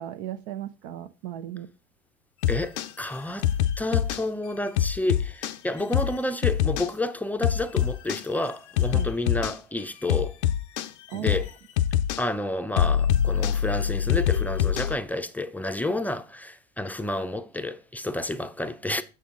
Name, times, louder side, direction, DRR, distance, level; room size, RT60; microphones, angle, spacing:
voice 1, 0.0-1.7 8.9-9.1 11.1-11.4, right 11 dB, 70° right, 0.7 m, -36 dB
sound 1, 2.4-2.9 3.4-4.2 4.8-5.6 5.9-6.1 6.4-6.9 7.4-8.2 8.8-9.6 10.1-10.9 11.3-11.5 11.8-12.2 12.8-15.0, left 10 dB, 85° left, 0.6 m, -24 dB
voice 2, 2.5-3.5 3.8-10.4 11.1-11.5 12.2-19.0, left 1 dB, 5° left, 0.5 m, -30 dB
6.4 x 5.6 x 3.7 m
hypercardioid pair, 85°, 33 cm